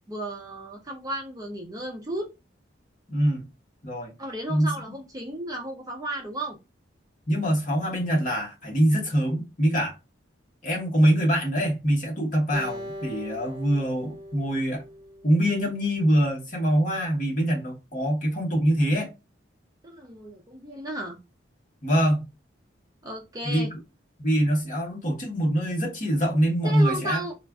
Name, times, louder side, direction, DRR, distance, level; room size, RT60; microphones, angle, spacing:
voice 1, 0.1-2.3 4.2-6.6 19.8-21.2 23.0-23.7 26.6-27.4, right 1 dB, 20° right, 0.4 m, -34 dB
voice 2, 3.1-3.4 3.8-4.1 4.5-4.7 7.3-10.0 10.6-14.8 15.2-19.1 21.8-22.2 23.4-23.8 24.2-27.2, equal, 40° left, 0.9 m, -24 dB
Acoustic guitar, 12.5-15.9, equal, 45° right, 0.9 m, -40 dB
2.3 x 2.2 x 3.4 m
head